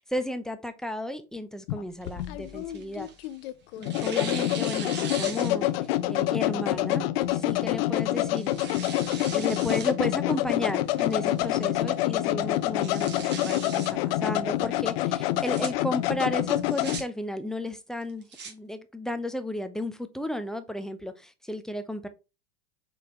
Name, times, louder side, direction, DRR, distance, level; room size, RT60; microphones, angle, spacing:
voice 1, 0.1-3.1 3.7-5.7 6.1-8.5 9.3-22.1, left 1 dB, ahead, 0.5 m, -34 dB
sound 1, 1.7-17.0, left 15 dB, 60° left, 0.5 m, -27 dB
Tearing, 2.0-3.4 3.8-5.9 6.3-6.4 7.3-7.6 8.1-9.9 10.3-10.4 11.0-11.4 11.8-11.9 12.1-12.2 12.6-13.9 15.2-15.7 16.5-17.0 18.0-18.5, right 6 dB, 30° right, 1.8 m, -40 dB
4.8 x 3.4 x 2.9 m
hypercardioid pair, 95°, 33 cm